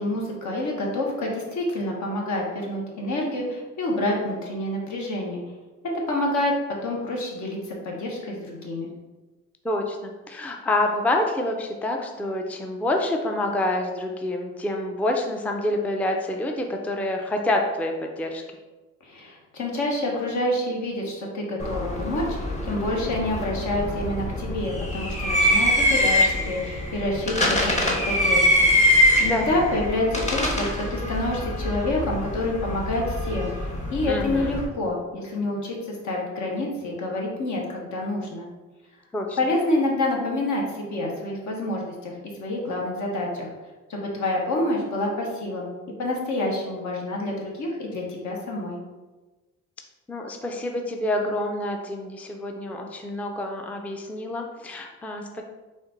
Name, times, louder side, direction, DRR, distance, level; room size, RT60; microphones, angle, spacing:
voice 1, 0.0-5.4 5.8-6.5 6.8-8.9 19.0-28.7 29.2-38.5 39.4-42.1 42.4-43.5 43.9-45.7 46.0-48.8, left 1 dB, 70° left, -1 dB, 1.2 m, -27 dB
voice 2, 9.6-18.4 29.2-29.5 34.1-34.6 39.1-39.4 50.1-55.4, left 1 dB, 5° left, 3 dB, 0.4 m, -27 dB
sound 1, 21.6-34.6, left 1 dB, 25° left, 0.9 m, -24 dB
4.3 x 2.6 x 3.8 m, 1.2 s
cardioid pair, 90°, 30 cm